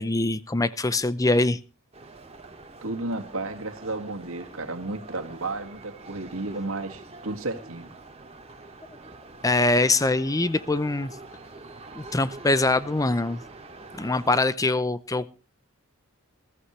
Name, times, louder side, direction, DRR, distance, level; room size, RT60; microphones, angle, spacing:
voice 1, 0.0-1.6 9.4-11.2 12.0-13.4 14.0-15.3, left 2 dB, 15° left, 0.6 m, -23 dB
sound 1, 1.9-14.4, right 2 dB, 30° right, 2.2 m, -45 dB
voice 2, 2.8-7.9, right 2 dB, 75° right, 2.2 m, -33 dB
20.5 x 14.0 x 3.2 m
head